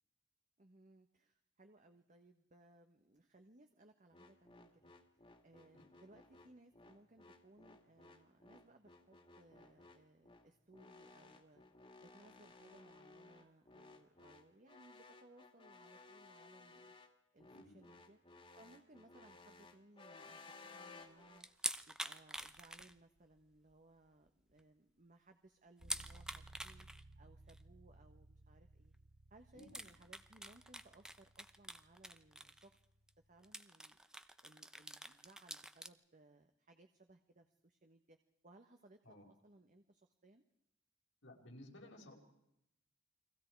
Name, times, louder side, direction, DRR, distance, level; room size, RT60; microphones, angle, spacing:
voice 1, 0.6-4.9 5.4-11.6 12.0-16.9 17.3-18.2 18.5-21.5 21.9-26.9 27.2-28.9 29.3-32.8 33.3-34.0 34.4-38.2 38.4-39.0 39.3-40.4, right 2 dB, 40° right, 6 dB, 1.4 m, -64 dB
sound 1, 4.1-21.4, left 3 dB, 30° left, 2.3 m, -59 dB
sound 2, 21.4-23.4 23.7-23.8 24.3-24.4 24.6-24.7 25.8-27.0 27.5-27.6 28.9-29.0 29.6-32.8 33.1-33.2 33.4-35.9, right 1 dB, 5° right, 0.8 m, -46 dB
sound 3, 25.8-33.5, right 2 dB, 75° right, 1.8 m, -61 dB
voice 2, 41.2-42.1, left 1 dB, 80° left, 1 dB, 5.2 m, -56 dB
30.0 x 23.0 x 4.7 m, 0.80 s
head